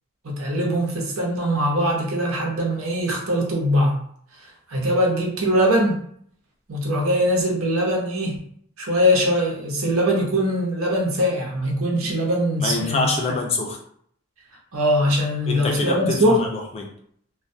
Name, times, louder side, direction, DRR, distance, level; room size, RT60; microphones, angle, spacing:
voice 1, 0.2-4.0 4.7-6.0 6.7-8.4 8.8-13.1 14.7-16.4, equal, 90° right, -1 dB, 0.7 m, -21 dB
voice 2, 12.6-13.8 15.5-16.9, left 3 dB, 30° left, 1 dB, 0.4 m, -25 dB
2.2 x 2.2 x 2.6 m, 0.65 s
head